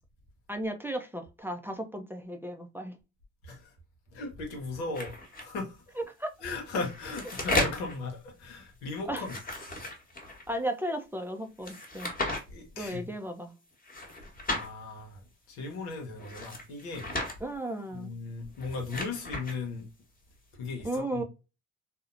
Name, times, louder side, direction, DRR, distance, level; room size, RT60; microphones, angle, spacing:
voice 1, 0.5-3.0 6.0-6.3 9.1-9.2 10.5-12.1 12.8-13.6 17.4-18.2 20.8-21.2, right 1 dB, 5° right, 0.4 m, -35 dB
voice 2, 4.1-5.1 5.4-6.0 6.4-9.3 12.5-13.0 14.5-15.2 15.5-17.1 17.9-19.9 20.5-21.2, left 3 dB, 90° left, 0.8 m, -37 dB
sound 1, 4.9-5.4 6.6-7.9 9.1-10.4 11.6-12.4 13.8-14.7 16.2-17.3 18.5-19.6, left 2 dB, 25° left, 1.1 m, -34 dB
2.7 x 2.0 x 2.4 m
hypercardioid pair, 50°, 34 cm